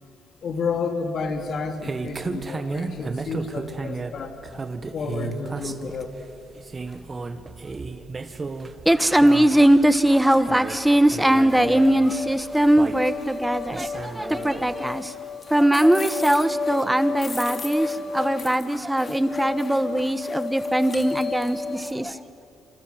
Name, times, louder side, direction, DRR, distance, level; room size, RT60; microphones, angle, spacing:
voice 1, 0.4-4.4 4.9-6.2, left 4 dB, 60° left, 5 dB, 3.1 m, -30 dB
sound 1, 1.3-14.9, right 3 dB, 30° right, 1.7 m, -35 dB
voice 2, 8.8-15.2 15.5-22.2, right 1 dB, 5° right, 12 dB, 1.3 m, -20 dB
sound 2, 11.5-21.9, left 4 dB, 35° left, 3.1 m, -32 dB
28.0 x 26.5 x 7.9 m, 2.5 s
cardioid pair, 90°, 0 cm